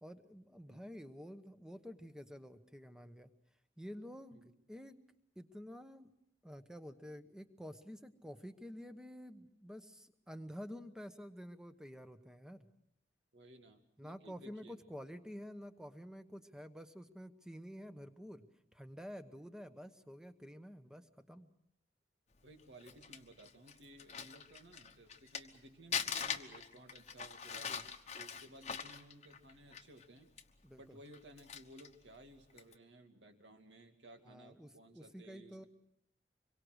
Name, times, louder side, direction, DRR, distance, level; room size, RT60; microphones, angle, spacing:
voice 1, 0.0-3.3 3.8-5.0 5.4-6.1 6.4-12.7 14.0-18.4 18.7-21.5 27.7-27.8 30.6-31.0 34.2-35.6, equal, 5° right, 9 dB, 1.1 m, -50 dB
voice 2, 13.3-14.8 22.4-27.7 28.1-30.3 30.7-35.7, right 1 dB, 75° right, 4 dB, 2.5 m, -58 dB
Crumpling crinkling, 22.6-25.6 25.9-30.0 30.4-30.5 31.1-31.9 32.5-32.7, left 7 dB, 35° left, 1.1 m, -42 dB
25.5 x 23.0 x 6.4 m, 0.78 s
head